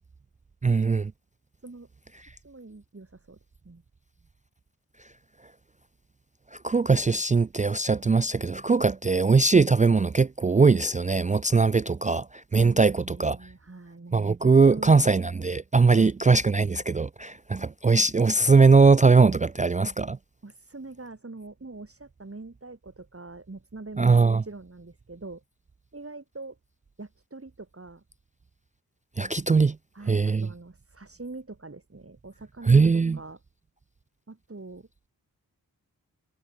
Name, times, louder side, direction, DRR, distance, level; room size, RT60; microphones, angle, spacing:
voice 1, 0.6-1.1 6.6-12.3 12.5-13.4 14.1-20.2 24.0-24.4 29.2-29.8 30.1-30.5 32.7-33.2, right 4 dB, 20° right, 0.4 m, -20 dB
voice 2, 2.4-3.4 3.6-3.8 12.5-15.2 15.9-16.1 20.4-25.4 25.9-26.6 27.0-28.0 29.9-33.4 34.3-34.9, right 3 dB, 40° right, 6.6 m, -43 dB
cardioid pair, 50°, 37 cm